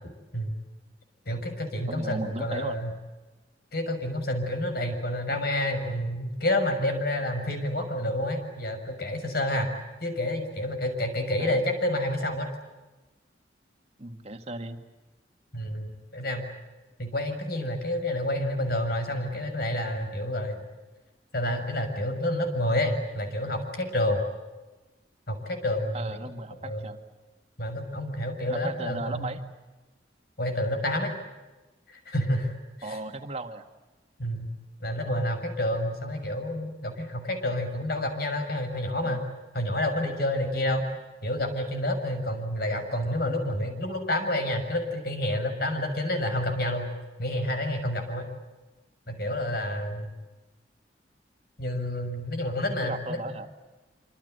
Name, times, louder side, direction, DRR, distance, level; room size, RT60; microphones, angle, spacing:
voice 1, 1.3-2.9 3.7-9.7 10.0-12.5 15.5-16.5 17.0-20.6 21.3-24.2 25.3-26.2 26.6-26.9 27.6-29.3 30.4-31.1 31.9-32.5 32.8-33.0 34.2-34.5 34.8-39.3 39.5-40.9 41.2-46.9 47.2-48.3 49.1-50.1 51.6-53.2, left 1 dB, 60° left, 6 dB, 6.6 m, -29 dB
voice 2, 1.9-2.8 11.4-11.6 14.0-14.8 25.9-27.0 28.5-29.4 32.8-33.7 39.0-39.2 52.8-53.5, right 2 dB, 35° right, 6 dB, 1.9 m, -36 dB
27.0 x 26.5 x 8.0 m, 1.2 s
head